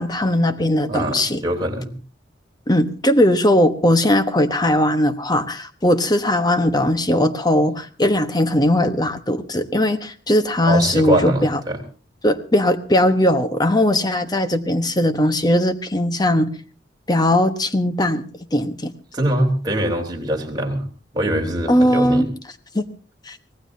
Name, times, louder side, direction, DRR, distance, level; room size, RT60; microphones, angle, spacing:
voice 1, 0.0-1.4 2.7-11.6 12.2-16.5 17.1-18.2 18.5-18.9 21.7-22.3 22.7-22.8 23.3-23.4, left 1 dB, 20° left, 9 dB, 1.1 m, -19 dB
voice 2, 0.9-1.9 10.6-11.8 19.1-20.8 21.1-22.3, right 1 dB, 20° right, 1 dB, 3.4 m, -22 dB
25.0 x 18.0 x 2.8 m, 0.36 s
head